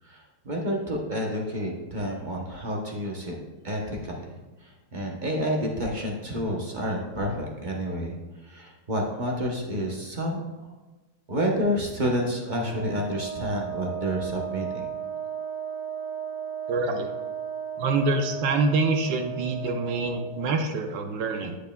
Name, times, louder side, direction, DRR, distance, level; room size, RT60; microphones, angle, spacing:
voice 1, 0.0-3.3 3.6-4.3 4.6-8.2 8.4-10.7 11.3-14.9, equal, 45° right, -1 dB, 0.6 m, -29 dB
Wind instrument woodwind instrument, 12.6-20.4, right 8 dB, 50° left, 2.3 m, -35 dB
voice 2, 16.7-17.1 17.8-21.6, right 3 dB, 80° right, 5 dB, 1.3 m, -26 dB
8.9 x 8.1 x 2.2 m, 1.2 s
omnidirectional pair, 2.0 m